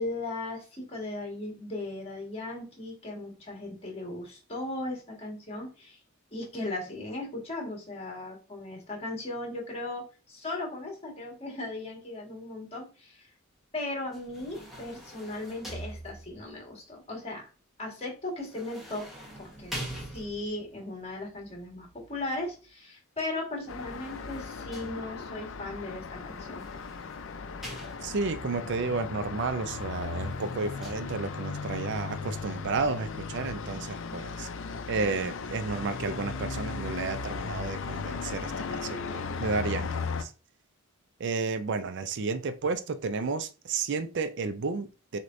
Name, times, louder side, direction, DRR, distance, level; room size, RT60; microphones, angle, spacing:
voice 1, 0.0-6.0 6.3-13.3 13.7-17.5 17.8-19.1 19.4-26.6, left 2 dB, 30° left, 1.6 m, -37 dB
sound 1, 14.1-16.6 18.4-20.7 23.6-25.4 26.4-28.4 29.8-30.9, right 1 dB, ahead, 1.2 m, -44 dB
Traffic noise roadway noise, 23.7-40.2, left 4 dB, 65° left, 0.5 m, -37 dB
voice 2, 28.0-34.5 34.9-40.3 41.2-45.2, right 4 dB, 55° right, 0.4 m, -32 dB
6.3 x 2.9 x 2.6 m
head